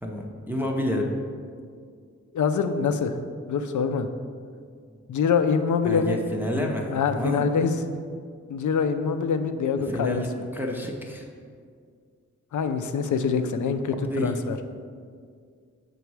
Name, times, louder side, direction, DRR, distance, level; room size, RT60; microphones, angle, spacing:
voice 1, 0.0-1.2 5.8-7.5 9.9-10.3 10.5-11.3 14.1-14.4, left 1 dB, 5° right, -1 dB, 0.5 m, -29 dB
voice 2, 2.3-3.2 3.5-4.1 5.1-6.2 6.6-7.8 8.5-10.2 12.5-14.6, left 6 dB, 85° left, 9 dB, 0.5 m, -25 dB
6.9 x 4.0 x 4.7 m, 2.1 s
wide cardioid pair, 160°, 29 cm